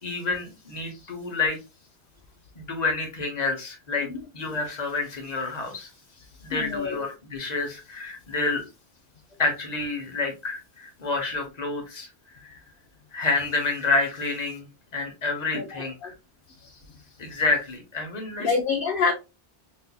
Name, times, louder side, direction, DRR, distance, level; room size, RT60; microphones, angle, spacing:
voice 1, 0.0-1.6 2.6-4.1 4.3-5.9 6.4-8.6 9.4-12.1 12.4-12.5 13.1-14.7 14.9-16.1 17.2-18.5, left 3 dB, 45° left, 1.0 m, -28 dB
voice 2, 6.5-7.0 15.5-15.6 16.0-16.1 18.4-19.1, left 5 dB, 60° left, 0.7 m, -25 dB
4.0 x 2.7 x 2.2 m
omnidirectional pair, 1.1 m